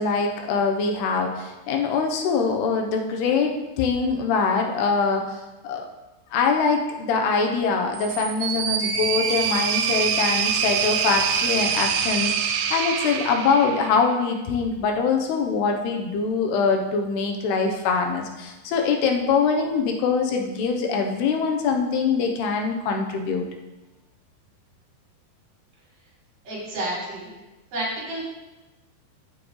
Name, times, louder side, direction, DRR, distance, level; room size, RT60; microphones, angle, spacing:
voice 1, 0.0-5.9 6.3-23.4, left 5 dB, 85° left, 3 dB, 3.1 m, -23 dB
sound 1, 7.9-14.2, right 7 dB, 80° right, 2.7 m, -25 dB
voice 2, 26.4-27.3 27.7-28.2, right 1 dB, 55° right, -4 dB, 4.9 m, -30 dB
14.5 x 7.7 x 3.2 m, 1.1 s
omnidirectional pair, 4.6 m